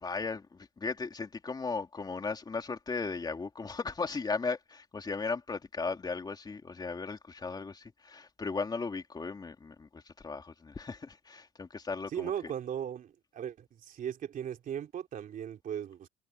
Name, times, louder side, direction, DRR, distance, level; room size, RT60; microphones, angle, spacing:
voice 1, 0.0-12.5, left 4 dB, 25° left, 3.2 m, -36 dB
voice 2, 12.1-13.5 13.9-16.1, right 9 dB, 55° right, 3.1 m, -37 dB
cardioid pair, 110°, 17 cm